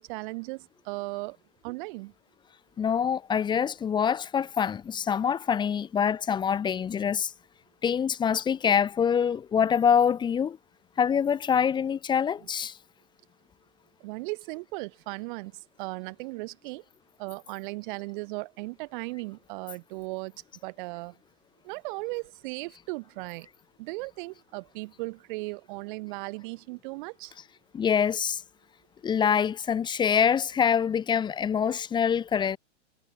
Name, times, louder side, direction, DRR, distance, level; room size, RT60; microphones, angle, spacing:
voice 1, 0.0-1.4 1.6-2.1 14.0-16.8 17.2-20.3 20.6-21.2 21.6-23.5 23.8-27.3, right 25 dB, 40° right, 3.5 m, -37 dB
voice 2, 2.8-7.3 7.8-10.6 11.0-12.8 27.7-28.4 29.0-32.6, left 7 dB, 10° left, 1.1 m, -25 dB
hypercardioid pair, 140°, 36 cm